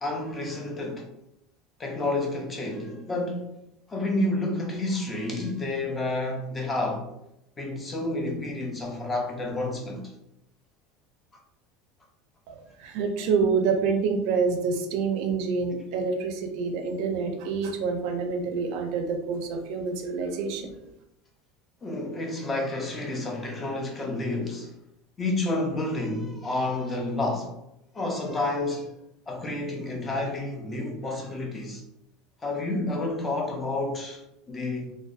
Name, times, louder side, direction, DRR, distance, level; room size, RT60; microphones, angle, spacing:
voice 1, 0.0-1.1 1.8-3.5 3.9-7.1 7.6-10.1 21.8-24.7 25.2-27.5 27.9-28.9 29.3-31.8 32.4-35.0, left 2 dB, 15° left, 0.4 m, -30 dB
voice 2, 12.5-20.7, right 5 dB, 60° right, 0.4 m, -27 dB
2.5 x 2.1 x 2.3 m
cardioid pair, 155°, 0 cm